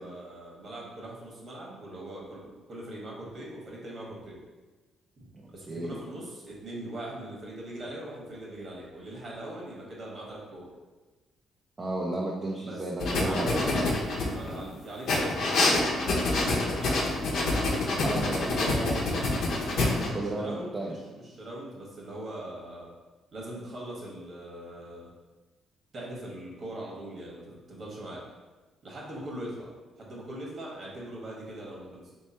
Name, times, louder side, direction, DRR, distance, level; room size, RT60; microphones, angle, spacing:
voice 1, 0.0-4.4 5.5-10.7 12.6-17.1 19.7-22.9 23.3-25.1 25.9-28.2 28.8-29.7 30.0-32.0, right 1 dB, 45° right, -3 dB, 1.4 m, -41 dB
voice 2, 5.3-6.0 11.8-13.6 18.0-19.3 20.1-21.0, right 1 dB, 30° right, -3 dB, 0.6 m, -33 dB
sound 1, 13.0-14.6 15.1-20.1, left 2 dB, 70° left, 0.9 m, -26 dB
3.3 x 3.1 x 4.3 m, 1.2 s
cardioid pair, 85°, 0 cm